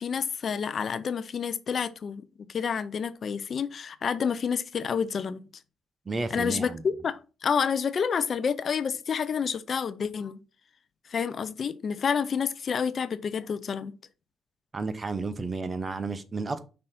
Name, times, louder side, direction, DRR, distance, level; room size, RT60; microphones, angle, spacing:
voice 1, 0.0-2.2 2.5-5.4 6.3-10.4 11.1-13.9, left 6 dB, 50° left, 0.6 m, -29 dB
voice 2, 6.1-6.8 14.7-16.6, right 3 dB, 30° right, 0.8 m, -32 dB
5.5 x 4.0 x 5.7 m
cardioid pair, 90°, 0 cm